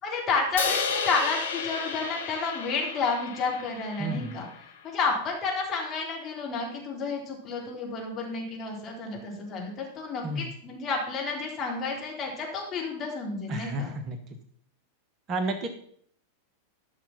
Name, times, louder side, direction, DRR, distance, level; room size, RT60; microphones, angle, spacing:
voice 1, 0.0-4.5 4.8-13.9, left 4 dB, 25° left, -1 dB, 4.1 m, -31 dB
Crash cymbal, 0.6-4.8, left 5 dB, 65° left, 1.6 m, -33 dB
voice 2, 4.0-4.3 10.2-10.5 13.5-14.2 15.3-15.7, right 2 dB, 30° right, 8 dB, 1.1 m, -31 dB
13.5 x 6.0 x 6.0 m, 0.63 s
figure-of-eight pair, 90°, 0 cm